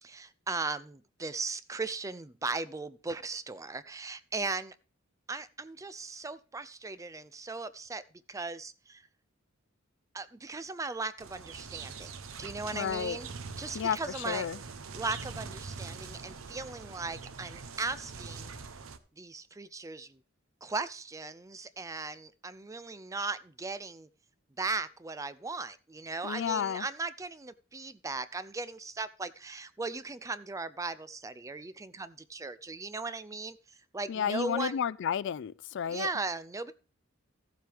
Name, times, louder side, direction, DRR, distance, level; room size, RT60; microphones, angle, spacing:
voice 1, 0.0-4.7 5.3-8.0 8.3-9.0 10.1-12.1 12.4-13.3 13.6-14.5 14.9-18.5 19.2-20.2 20.6-24.1 24.6-33.6 33.9-34.8 35.9-36.7, right 3 dB, 15° right, 0.4 m, -37 dB
sound 1, 11.2-19.0, right 4 dB, 75° right, 0.8 m, -44 dB
voice 2, 12.7-13.2 13.7-14.6 26.2-26.8 34.1-36.1, left 8 dB, 60° left, 0.4 m, -32 dB
14.0 x 7.5 x 3.4 m
head